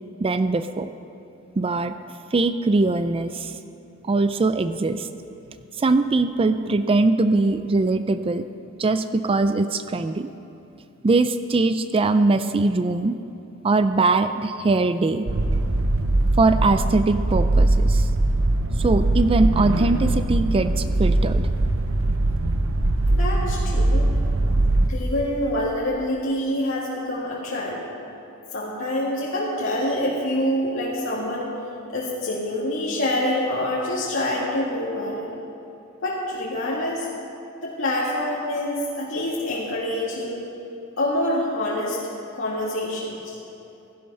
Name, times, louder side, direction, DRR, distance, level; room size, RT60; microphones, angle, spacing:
voice 1, 0.2-0.9 1.6-1.9 2.3-3.5 4.1-5.1 5.8-8.5 8.8-10.3 11.0-13.2 13.6-15.3 16.4-18.1 18.8-21.5, right 3 dB, 25° right, 11 dB, 0.4 m, -21 dB
sound 1, 15.3-24.9, right 2 dB, 75° right, 0.9 m, -21 dB
voice 2, 23.1-24.1 24.9-27.8 28.5-31.5 31.9-35.3 36.0-37.1 37.6-40.5 41.0-42.0 42.3-43.4, left 1 dB, 65° left, -6 dB, 2.2 m, -26 dB
17.0 x 12.0 x 5.5 m, 2.7 s
head